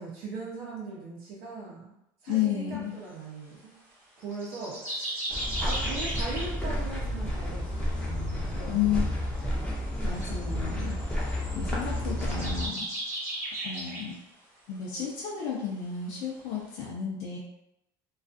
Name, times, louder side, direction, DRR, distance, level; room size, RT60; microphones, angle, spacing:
voice 1, 0.0-1.9 2.2-3.7 4.2-5.2 5.6-9.2 9.5-9.7, right 3 dB, 65° right, -6 dB, 0.6 m, -40 dB
voice 2, 2.3-2.9 8.7-9.0 10.0-11.0 11.5-12.9 13.6-14.2 14.7-17.4, left 9 dB, 60° left, -4 dB, 0.5 m, -32 dB
sound 1, 4.2-6.5 10.2-10.4 12.0-14.1 14.8-14.9, right 1 dB, 20° right, 0.9 m, -35 dB
sound 2, 5.3-12.7, left 1 dB, 10° left, 0.6 m, -31 dB
2.4 x 2.3 x 2.5 m, 0.85 s
cardioid pair, 155°, 10 cm